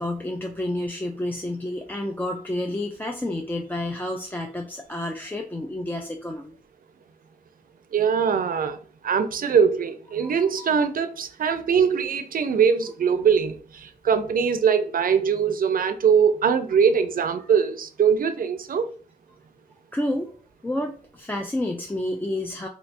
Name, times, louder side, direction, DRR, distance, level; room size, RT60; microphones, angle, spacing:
voice 1, 0.0-6.6 10.2-10.3 10.6-10.7 19.9-20.3 20.6-22.7, left 1 dB, 15° left, 0.4 m, -30 dB
voice 2, 7.9-8.8 9.0-18.9, right 6 dB, 85° right, 0.4 m, -22 dB
3.3 x 3.0 x 2.5 m
wide cardioid pair, 100°, 14 cm